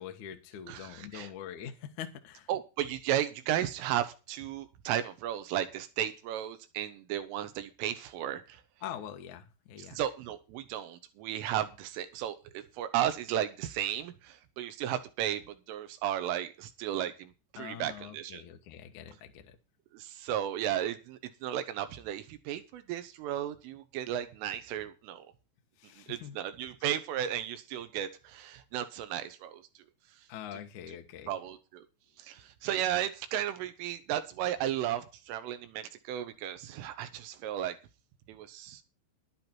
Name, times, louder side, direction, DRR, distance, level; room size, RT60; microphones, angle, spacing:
voice 1, 0.0-2.5 8.8-10.0 17.6-19.6 25.8-26.4 30.3-31.3, left 9 dB, 70° left, 6 dB, 1.8 m, -44 dB
voice 2, 0.7-1.3 2.5-8.6 9.8-18.4 19.9-25.3 26.0-29.6 30.1-30.2 30.5-30.6 30.9-31.0 31.3-31.8 32.2-37.8 38.3-38.8, right 11 dB, 80° right, 9 dB, 3.7 m, -34 dB
11.5 x 11.5 x 4.5 m, 0.31 s
omnidirectional pair, 5.9 m